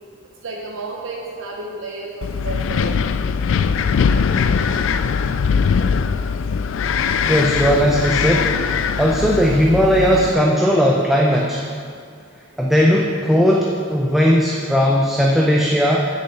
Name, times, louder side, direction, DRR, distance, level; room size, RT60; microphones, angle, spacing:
voice 1, 0.4-3.2, right 2 dB, 80° right, -1 dB, 0.8 m, -31 dB
Wind, 2.2-10.3, left 6 dB, 75° left, 0.3 m, -20 dB
voice 2, 7.3-8.6 9.0-11.6 12.6-16.1, equal, ahead, -2 dB, 0.5 m, -17 dB
6.8 x 5.5 x 7.0 m, 2.3 s
head